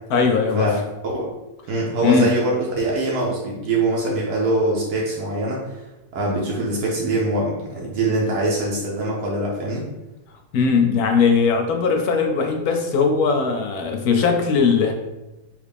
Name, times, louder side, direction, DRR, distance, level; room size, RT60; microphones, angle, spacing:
voice 1, 0.1-0.8 2.0-2.3 10.5-14.9, left 5 dB, 80° left, 4 dB, 1.1 m, -19 dB
voice 2, 1.7-5.6 6.1-9.8, right 2 dB, 80° right, -4 dB, 1.2 m, -23 dB
3.4 x 2.4 x 3.4 m, 1.0 s
omnidirectional pair, 1.6 m